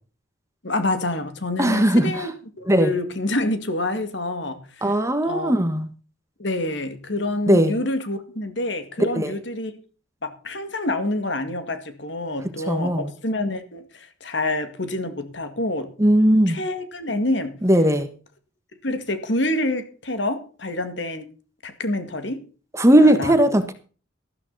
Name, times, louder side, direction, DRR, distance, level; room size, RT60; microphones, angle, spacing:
voice 1, 0.6-5.0 5.2-5.5 6.4-9.7 10.2-15.9 16.5-17.5 18.8-21.3 21.6-22.4 23.0-23.5, left 1 dB, 60° left, 2.1 m, -27 dB
voice 2, 1.6-2.3 2.7-2.9 4.8-5.9 7.5-7.7 9.1-9.3 12.7-13.1 16.0-16.6 17.6-18.1 22.7-23.7, right 1 dB, 15° right, 1.3 m, -18 dB
13.5 x 13.0 x 4.1 m
head